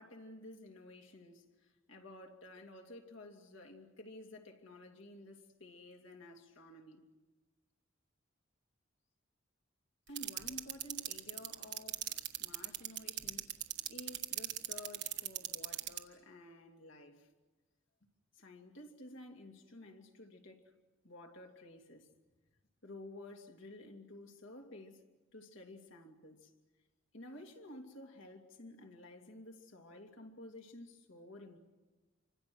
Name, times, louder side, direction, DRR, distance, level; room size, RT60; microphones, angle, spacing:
voice 1, 0.0-1.4 1.9-7.0 10.1-13.5 13.9-17.3 18.4-20.6 21.0-22.1 22.8-25.0 25.3-26.5 27.1-31.6, left 1 dB, 75° left, 2.8 m, -52 dB
sound 1, 10.2-16.0, right 13 dB, 55° right, 1.5 m, -36 dB
28.5 x 25.5 x 6.3 m
head